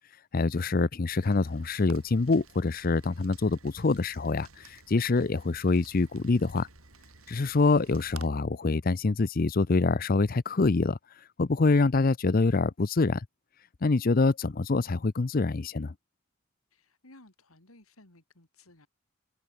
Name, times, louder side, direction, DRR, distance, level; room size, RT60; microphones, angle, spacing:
voice 1, 0.3-6.7 7.3-13.2 13.8-15.9, left 3 dB, 45° left, 0.6 m, -25 dB
Rain, 1.1-8.3, right 4 dB, 90° right, 7.0 m, -53 dB
voice 2, 16.7-18.9, left 2 dB, 90° left, 4.6 m, -57 dB
head